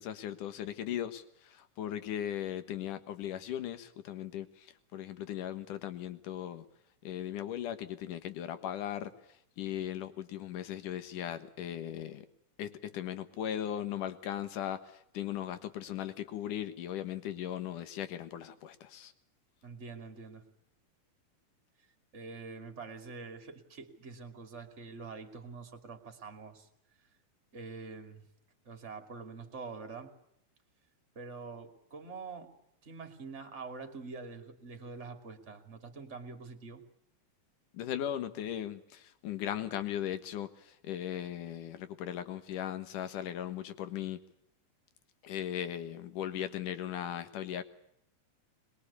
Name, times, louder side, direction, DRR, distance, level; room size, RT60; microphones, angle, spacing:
voice 1, 0.0-4.7 4.9-6.7 7.0-9.1 9.6-12.3 12.6-19.1 37.7-44.2 45.2-47.6, left 11 dB, 90° left, 11 dB, 3.0 m, -38 dB
voice 2, 19.6-20.4 22.1-26.7 27.5-28.2 28.6-30.1 31.1-32.5 32.8-36.8, right 4 dB, 25° right, 7 dB, 2.6 m, -45 dB
23.5 x 21.5 x 8.4 m, 0.74 s
omnidirectional pair, 3.6 m